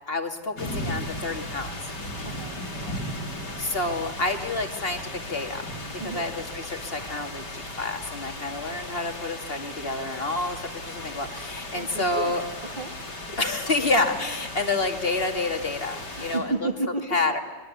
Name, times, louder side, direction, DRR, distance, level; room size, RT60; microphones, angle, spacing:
voice 1, 0.1-1.7 3.6-5.7 6.0-12.4 13.4-16.7 17.1-17.4, left 2 dB, 35° left, 5 dB, 2.4 m, -28 dB
sound 1, 0.6-16.4, left 1 dB, 85° left, 4.8 m, -36 dB
voice 2, 2.2-2.6 2.8-3.0 6.0-6.3 11.7-12.9 16.2-17.1, right 2 dB, 30° right, 0 dB, 2.3 m, -32 dB
26.0 x 23.0 x 9.8 m, 1.3 s
omnidirectional pair, 1.8 m